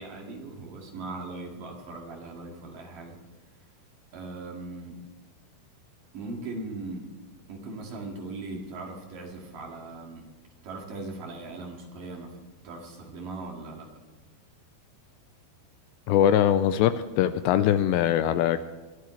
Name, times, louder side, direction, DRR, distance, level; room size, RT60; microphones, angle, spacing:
voice 1, 0.0-3.2 4.1-5.0 6.1-7.1 7.5-10.2 10.6-12.4 12.6-13.9, right 3 dB, 55° right, 0 dB, 3.3 m, -39 dB
voice 2, 16.1-18.6, left 10 dB, 85° left, 11 dB, 2.6 m, -22 dB
21.5 x 13.5 x 3.2 m, 1.3 s
omnidirectional pair, 5.3 m